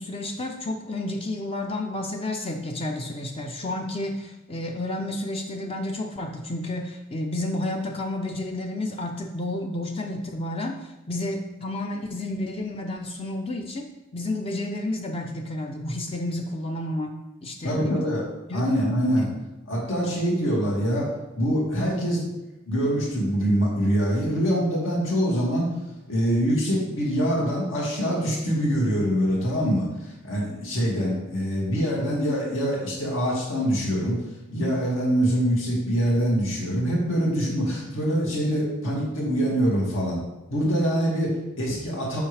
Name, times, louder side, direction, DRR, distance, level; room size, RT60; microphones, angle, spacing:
voice 1, 0.0-17.1 17.4-18.2 18.5-18.7 19.2-19.3, left 1 dB, 25° left, 2 dB, 0.5 m, -31 dB
voice 2, 17.6-18.2 18.5-19.3 19.7-21.1 21.4-22.3 22.7-25.7 26.1-34.2 34.5-40.2 40.5-42.2, equal, 70° left, -4 dB, 2.3 m, -24 dB
7.2 x 5.6 x 3.4 m, 1.0 s
head